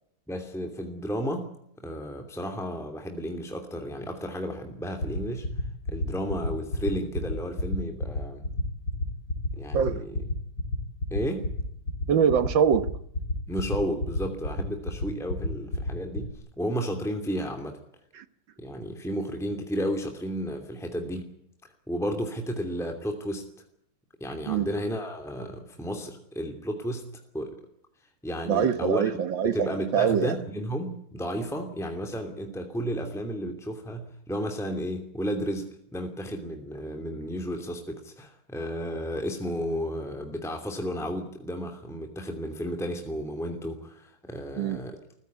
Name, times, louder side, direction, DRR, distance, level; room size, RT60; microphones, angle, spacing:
voice 1, 0.3-1.5 1.8-5.5 5.9-8.4 9.5-10.2 11.1-11.5 13.5-16.3 16.6-17.8 18.6-21.3 21.9-23.4 24.2-27.0 27.3-27.5 28.2-29.0 29.4-45.0, equal, ahead, 2.7 m, -32 dB
sound 1, 5.0-16.3, left 2 dB, 60° left, 4.4 m, -28 dB
voice 2, 12.1-12.9 18.2-18.3 24.5-24.7 28.5-29.7 29.9-30.4 44.6-44.8, right 7 dB, 70° right, 1.9 m, -23 dB
24.0 x 15.5 x 9.7 m
omnidirectional pair, 2.2 m